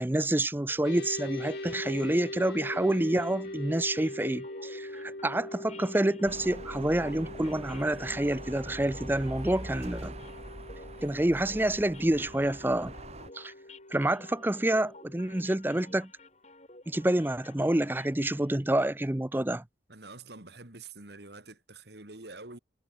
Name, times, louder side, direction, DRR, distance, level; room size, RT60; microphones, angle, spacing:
voice 1, 0.0-10.1 11.0-12.9 13.3-13.5 13.9-16.1 16.9-19.6, right 1 dB, 10° right, 0.5 m, -28 dB
sound 1, 0.7-18.5, left 3 dB, 35° left, 5.2 m, -54 dB
sound 2, 0.8-15.6, left 1 dB, 60° left, 3.2 m, -42 dB
sound 3, 6.2-13.3, right 1 dB, 35° right, 2.9 m, -43 dB
voice 2, 19.9-22.6, right 3 dB, 65° right, 2.7 m, -46 dB
head